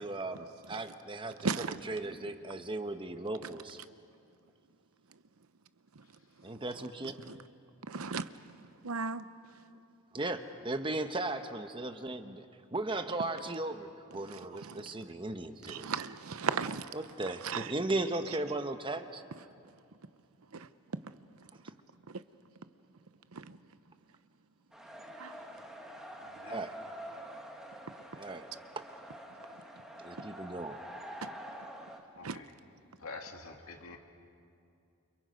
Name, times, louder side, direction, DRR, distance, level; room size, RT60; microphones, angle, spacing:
voice 1, 0.0-1.4 1.8-3.8 6.4-7.2 10.1-15.9 16.9-19.2 26.4-26.7 28.1-28.5 30.0-30.8, right 2 dB, 25° right, 1.0 m, -37 dB
voice 2, 1.4-1.8 3.4-3.5 7.2-7.4 7.9-8.3 8.8-9.2 14.3-14.9 15.6-17.0 17.4-17.7 20.5-20.7 22.1-22.2 23.3-23.6 25.2-25.4 31.2-31.3 32.2-32.4, right 5 dB, 85° right, 0.8 m, -36 dB
sound 1, 24.7-32.0, equal, 5° right, 1.8 m, -47 dB
voice 3, 26.2-26.6 32.2-32.5 33.0-34.0, left 3 dB, 80° left, 2.6 m, -46 dB
29.5 x 29.5 x 5.3 m
head